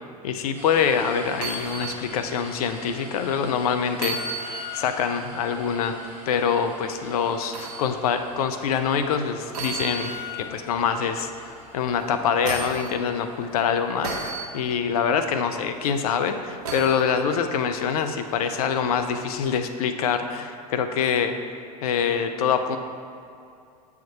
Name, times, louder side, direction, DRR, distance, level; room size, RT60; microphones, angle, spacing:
voice 1, 0.2-10.1 10.4-21.3 21.8-22.8, left 7 dB, 65° left, 8 dB, 0.6 m, -25 dB
sound 1, 0.5-19.6, equal, 10° right, 1.6 m, -47 dB
sound 2, 1.3-2.0 2.4-2.5 3.9-5.0 7.5-7.8 9.5-10.5 12.0-12.9 14.0-14.5 16.6-17.0 18.8-18.9, right 2 dB, 70° right, 1.2 m, -32 dB
7.5 x 3.6 x 5.7 m, 2.5 s
hypercardioid pair, 85°, 20 cm